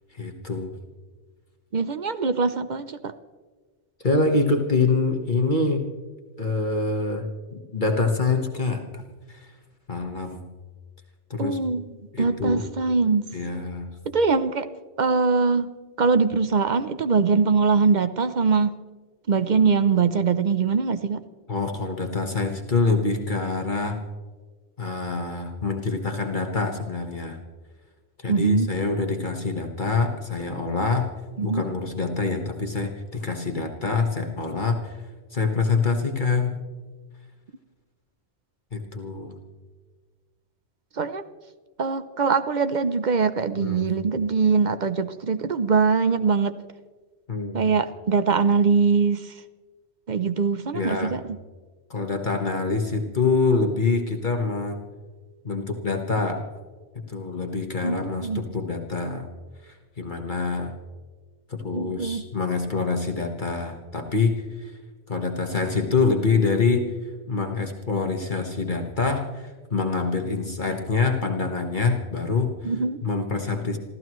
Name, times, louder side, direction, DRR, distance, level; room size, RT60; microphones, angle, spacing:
voice 1, 0.1-0.7 4.0-5.8 6.4-9.0 9.3-9.5 9.9-10.4 11.3-11.6 12.1-12.6 13.3-13.9 21.5-24.0 24.8-27.4 28.2-31.1 31.4-35.0 35.3-36.5 38.7-39.3 43.6-43.8 47.3-47.6 50.7-51.2 51.9-54.8 55.4-56.4 57.1-59.3 59.6-60.7 61.5-64.8 65.1-66.9 67.3-72.7 73.0-73.8, left 4 dB, 40° left, 3 dB, 1.5 m, -25 dB
voice 2, 1.7-3.1 11.4-11.8 12.2-13.2 14.1-15.7 16.0-18.7 19.3-21.2 28.3-28.7 31.4-31.6 40.9-41.2 41.8-46.6 47.5-49.3 50.1-51.4 57.8-58.4 61.7-62.2 72.6-73.0, right 5 dB, 45° right, 11 dB, 0.7 m, -22 dB
28.0 x 14.0 x 3.1 m, 1.4 s
omnidirectional pair, 1.3 m